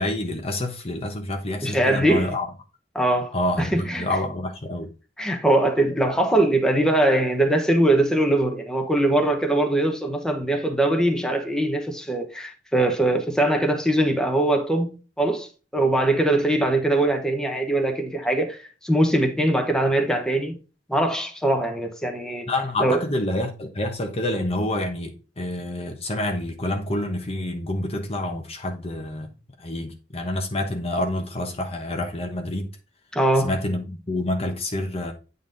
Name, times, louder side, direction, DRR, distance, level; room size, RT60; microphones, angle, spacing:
voice 1, 0.0-2.5 3.3-4.9 22.5-29.3 29.6-32.7 33.4-35.1, left 1 dB, 35° left, 1.0 m, -28 dB
voice 2, 1.6-2.3 2.9-4.1 5.2-20.6 20.9-22.5 22.8-23.0 33.1-33.5, right 1 dB, 5° left, 1.1 m, -22 dB
9.0 x 4.0 x 3.9 m
head